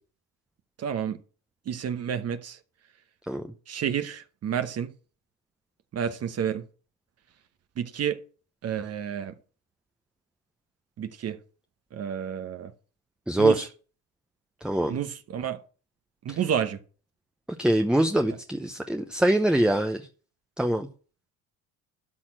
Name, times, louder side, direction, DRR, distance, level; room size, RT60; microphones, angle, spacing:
voice 1, 0.8-1.2 1.7-2.6 3.7-4.9 5.9-6.6 7.8-8.2 8.6-9.3 11.0-11.4 11.9-12.7 13.4-13.6 14.9-15.6 16.2-16.8, right 8 dB, 40° right, 1.0 m, -30 dB
voice 2, 13.3-13.7 14.6-15.0 16.3-16.4 17.6-20.1 20.6-20.9, right 1 dB, ahead, 0.7 m, -24 dB
12.5 x 4.3 x 7.5 m
supercardioid pair, 100°, 37 cm